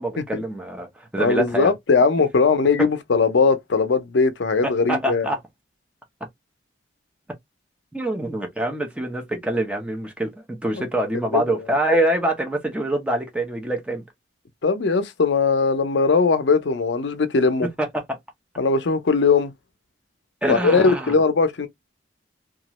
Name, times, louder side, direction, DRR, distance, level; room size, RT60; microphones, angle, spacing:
voice 1, 0.0-1.7 4.6-5.4 7.9-14.0 17.8-18.2 20.4-21.1, right 1 dB, 5° right, 0.6 m, -25 dB
voice 2, 1.2-5.3 10.7-10.8 11.3-11.6 14.6-17.7 18.6-19.5 20.5-21.7, left 4 dB, 75° left, 0.5 m, -20 dB
2.9 x 2.4 x 2.9 m
head